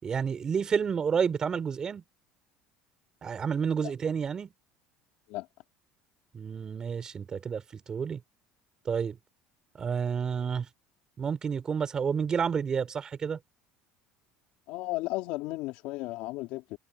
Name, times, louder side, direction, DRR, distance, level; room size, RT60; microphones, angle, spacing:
voice 1, 0.0-2.0 3.2-4.5 6.3-8.2 8.8-9.2 9.8-10.7 11.2-13.4, right 6 dB, 30° right, 4.4 m, -30 dB
voice 2, 14.7-16.8, left 20 dB, 70° left, 3.1 m, -34 dB
supercardioid pair, 115°, 2 cm